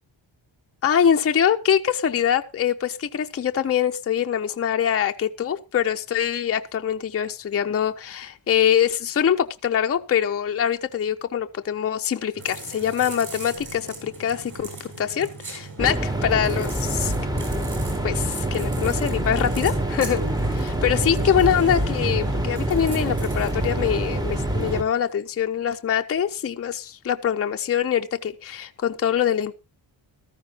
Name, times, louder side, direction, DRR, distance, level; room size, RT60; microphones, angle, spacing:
voice 1, 0.8-17.1 18.0-20.2 20.5-29.5, left 9 dB, 30° left, 0.5 m, -24 dB
sound 1, 12.3-24.8, right 3 dB, 40° right, 7.3 m, -38 dB
sound 2, 12.8-13.2 13.5-15.3 17.0-18.4 18.7-19.3 19.6-20.3 20.7-21.6, right 4 dB, 85° right, 5.9 m, -47 dB
sound 3, 15.8-24.8, right 1 dB, 10° right, 0.8 m, -26 dB
15.0 x 13.5 x 2.8 m
wide cardioid pair, 180°, 46 cm